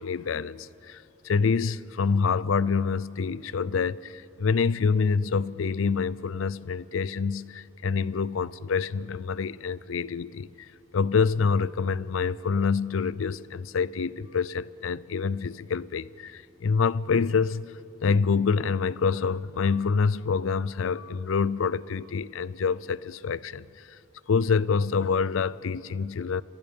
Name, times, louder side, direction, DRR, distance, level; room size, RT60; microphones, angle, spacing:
voice 1, 0.0-24.0 24.3-26.4, left 5 dB, 90° left, 0.5 m, -27 dB
28.0 x 15.5 x 7.1 m
head